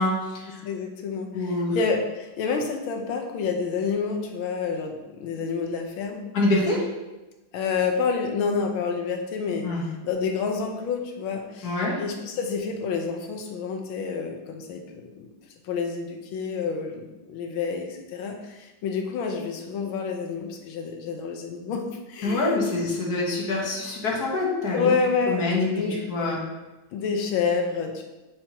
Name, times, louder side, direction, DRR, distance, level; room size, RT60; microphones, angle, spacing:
voice 1, 0.0-0.6 1.3-1.8 6.3-6.9 9.6-9.8 11.6-12.0 22.2-24.9 25.3-26.4, left 2 dB, 55° left, -3 dB, 1.8 m, -25 dB
voice 2, 0.6-6.3 7.5-15.3 15.6-22.9 24.7-26.0 26.9-28.0, left 5 dB, 80° left, 3 dB, 1.5 m, -29 dB
8.2 x 4.4 x 2.9 m, 1.1 s
omnidirectional pair, 2.2 m